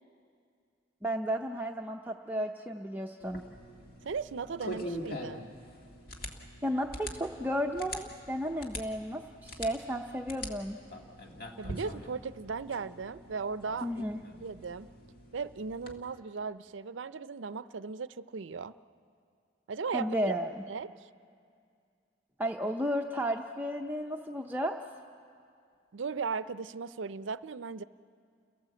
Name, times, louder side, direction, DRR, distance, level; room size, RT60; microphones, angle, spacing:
voice 1, 1.0-3.4 6.6-10.8 13.8-14.2 19.9-20.6 22.4-24.8, equal, 10° right, 2 dB, 0.6 m, -33 dB
sound 1, 3.2-16.0, equal, 50° left, 1.9 m, -44 dB
voice 2, 4.1-5.5 11.6-14.0 14.4-14.9 15.3-18.7 19.7-20.4 20.7-21.1 25.9-27.8, right 5 dB, 80° right, 15 dB, 0.5 m, -37 dB
29.5 x 17.5 x 7.7 m, 2.3 s
head